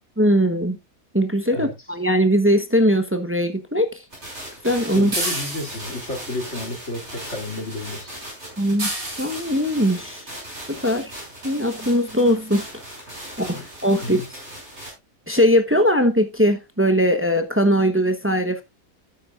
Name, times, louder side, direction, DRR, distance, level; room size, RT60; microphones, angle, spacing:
voice 1, 0.2-0.8 1.1-4.0 4.6-5.1 8.6-8.9 9.2-10.2 10.7-11.1 11.4-12.6 13.4-14.2 15.3-18.6, equal, 10° right, 0.8 m, -20 dB
sound 1, 4.1-14.9, right 1 dB, 45° right, 6.2 m, -38 dB
voice 2, 4.9-8.2 13.4-13.6 14.0-14.3, left 2 dB, 50° left, 3.0 m, -31 dB
sound 2, 5.1-6.1 8.8-9.6 11.0-11.1 11.7-11.9 12.2-12.3 12.6-12.7, right 1 dB, 70° right, 4.3 m, -29 dB
12.5 x 9.2 x 2.4 m
omnidirectional pair, 1.6 m